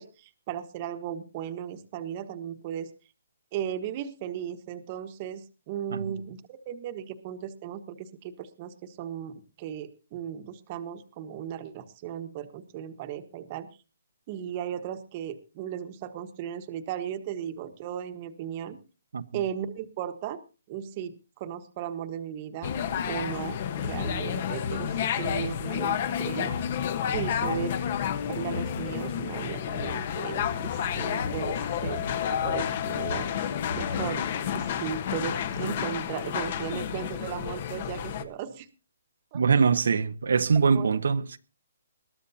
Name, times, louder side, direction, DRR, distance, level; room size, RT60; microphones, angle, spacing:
voice 1, 0.0-2.9 3.5-13.7 14.3-18.8 19.3-20.4 20.7-22.7 23.1-26.5 27.1-27.8 28.3-33.3 33.7-38.7 39.3-39.4 40.7-40.9, right 9 dB, 30° right, 1.3 m, -36 dB
sound 1, 22.6-38.2, left 8 dB, 35° left, 1.2 m, -30 dB
voice 2, 39.3-41.4, right 5 dB, 75° right, 0.9 m, -23 dB
21.0 x 13.5 x 2.8 m
hypercardioid pair, 165°, 0 cm